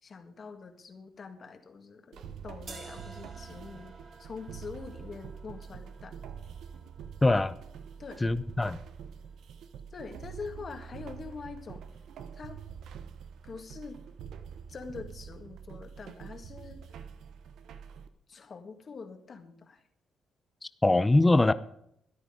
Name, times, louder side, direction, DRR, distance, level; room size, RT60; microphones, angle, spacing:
voice 1, 0.0-6.2 8.0-8.3 9.9-11.8 12.3-12.6 13.4-14.0 14.7-16.8 18.3-19.8, left 5 dB, 45° left, 6 dB, 1.8 m, -44 dB
sound 1, 2.1-18.1, right 7 dB, 75° right, 1.0 m, -46 dB
sound 2, 2.7-8.6, right 3 dB, 45° right, 2.4 m, -53 dB
voice 2, 7.2-7.6 8.2-8.8 20.8-21.5, left 2 dB, 15° left, 15 dB, 0.7 m, -22 dB
13.5 x 10.5 x 5.1 m, 0.72 s
cardioid pair, 90°, 0 cm